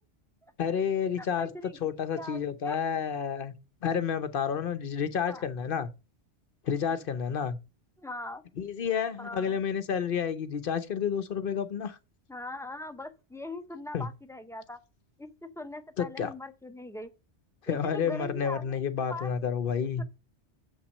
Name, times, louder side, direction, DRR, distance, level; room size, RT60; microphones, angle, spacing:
voice 1, 0.6-1.5 1.8-3.5 3.8-5.9 6.6-7.6 8.6-12.0 13.9-14.1 16.0-16.3 17.6-20.0, left 7 dB, 55° left, 0.8 m, -30 dB
voice 2, 1.2-1.8 2.1-2.8 5.3-5.4 8.0-8.4 9.2-9.6 12.3-14.8 15.2-17.1 17.7-18.8 19.1-19.3 20.0-20.1, left 1 dB, 5° left, 0.4 m, -41 dB
7.4 x 5.8 x 5.3 m
omnidirectional pair, 1.2 m